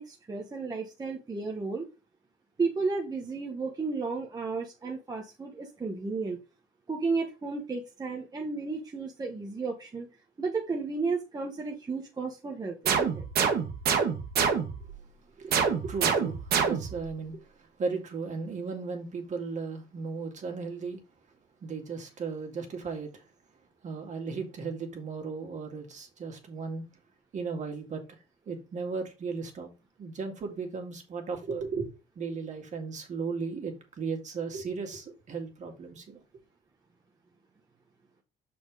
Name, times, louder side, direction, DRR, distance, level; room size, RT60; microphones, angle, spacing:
voice 1, 0.0-1.9 2.6-6.4 6.9-10.1 10.4-13.2, right 4 dB, 20° right, 1.1 m, -33 dB
sound 1, 12.8-14.9 15.5-17.1, right 6 dB, 65° right, 1.4 m, -27 dB
voice 2, 15.4-21.0 21.6-23.2 23.8-26.9 27.3-28.2 28.5-29.7 30.0-31.9 32.2-36.2, right 4 dB, 45° right, 2.1 m, -36 dB
6.1 x 4.3 x 4.8 m
cardioid pair, 110°, 17 cm